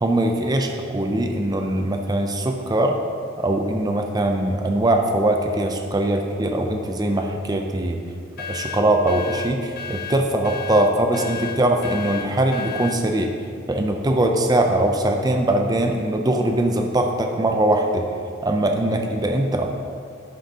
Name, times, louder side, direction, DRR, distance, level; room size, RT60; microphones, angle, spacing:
voice 1, 0.0-3.0 3.4-8.0 8.5-13.3 13.7-18.0 18.4-19.7, right 1 dB, 20° right, 3 dB, 0.5 m, -21 dB
sound 1, 8.4-13.0, left 8 dB, 45° left, 0.4 m, -33 dB
11.5 x 6.2 x 2.8 m, 2.3 s
head